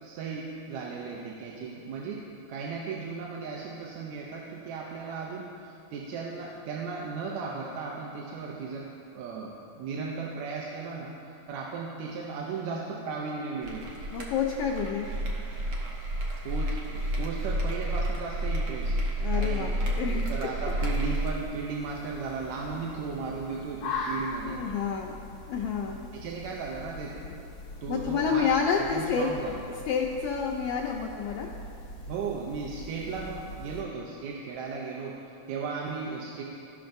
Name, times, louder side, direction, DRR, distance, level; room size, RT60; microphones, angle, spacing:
voice 1, 0.0-2.2 2.5-8.9 9.1-14.0 16.4-19.0 19.3-19.8 20.1-24.6 26.1-27.5 27.8-28.5 28.8-29.6 32.1-36.4, right 4 dB, 75° right, -2 dB, 1.9 m, -36 dB
sound 1, 13.6-21.4, right 1 dB, 60° right, 1.5 m, -30 dB
voice 2, 14.1-15.1 19.2-20.3 24.4-25.2 25.5-26.0 27.9-29.3 29.9-31.5, left 6 dB, 85° left, -1 dB, 1.3 m, -29 dB
sound 2, 20.8-33.8, left 3 dB, 55° left, 1.9 m, -41 dB
16.0 x 5.8 x 2.6 m, 2.8 s
omnidirectional pair, 3.3 m